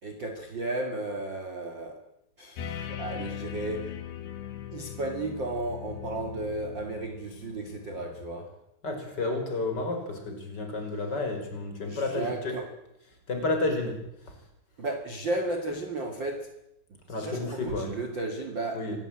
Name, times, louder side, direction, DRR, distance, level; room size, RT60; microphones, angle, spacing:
voice 1, 0.0-2.1 2.4-3.9 4.7-8.6 11.9-12.7 14.8-16.5 16.9-19.0, right 2 dB, 40° right, 1.8 m, -34 dB
sound 1, 2.6-8.2, left 10 dB, 80° left, 4.3 m, -40 dB
voice 2, 8.8-12.5 13.3-14.0 14.3-14.4 17.1-17.9 18.7-19.0, left 2 dB, 25° left, 5.5 m, -31 dB
25.5 x 17.0 x 8.9 m
omnidirectional pair, 5.0 m